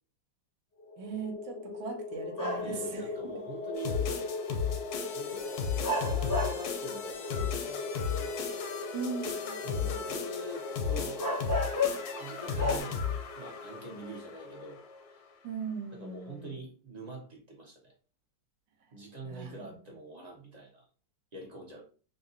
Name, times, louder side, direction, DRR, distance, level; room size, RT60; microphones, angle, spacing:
sound 1, 0.8-15.1, left 3 dB, 90° left, 0.6 m, -40 dB
voice 1, 1.0-3.4 8.9-9.6 15.4-16.5 19.2-19.5 19.9-20.0, right 5 dB, 75° right, 5 dB, 1.4 m, -39 dB
sound 2, 2.4-2.9 4.7-4.8 5.8-6.7 7.4-8.0 10.5-10.6 11.2-12.2 12.6-12.8, left 2 dB, 20° left, 0.5 m, -32 dB
voice 2, 2.6-4.2 5.1-8.4 9.6-11.2 12.1-13.1 13.4-14.8 15.1-15.2 15.9-17.9 18.9-20.8 21.3-21.8, right 1 dB, 35° right, -2 dB, 0.7 m, -44 dB
sound 3, 3.7-14.8, left 6 dB, 70° left, 1.0 m, -35 dB
3.8 x 2.8 x 2.6 m, 0.37 s
omnidirectional pair, 2.1 m